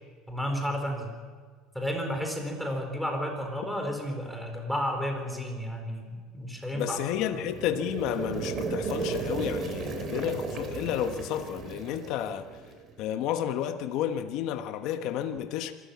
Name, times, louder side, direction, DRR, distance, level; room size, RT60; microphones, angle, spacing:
voice 1, 0.3-1.1 1.7-7.0, equal, ahead, 4.3 m, -32 dB
voice 2, 6.7-12.5 13.0-15.7, left 10 dB, 65° left, 1.2 m, -31 dB
sound 1, 6.9-12.9, right 4 dB, 35° right, 3.4 m, -35 dB
26.5 x 14.0 x 8.5 m
supercardioid pair, 125°, 0 cm